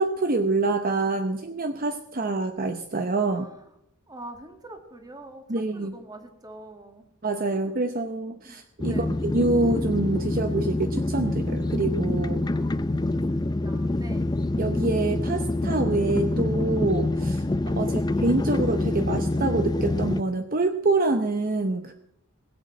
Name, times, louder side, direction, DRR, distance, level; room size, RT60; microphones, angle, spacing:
voice 1, 0.0-3.5 5.5-5.9 7.2-12.4 14.6-17.5 17.7-21.9, right 2 dB, 40° right, 7 dB, 0.8 m, -26 dB
voice 2, 3.3-3.7 4.1-7.1 7.5-7.7 8.4-8.6 8.8-9.1 12.5-14.3 17.8-18.1, right 1 dB, 20° right, 5 dB, 2.0 m, -45 dB
sound 1, 8.8-20.2, left 2 dB, 20° left, 0.5 m, -26 dB
20.5 x 8.2 x 7.6 m, 0.77 s
head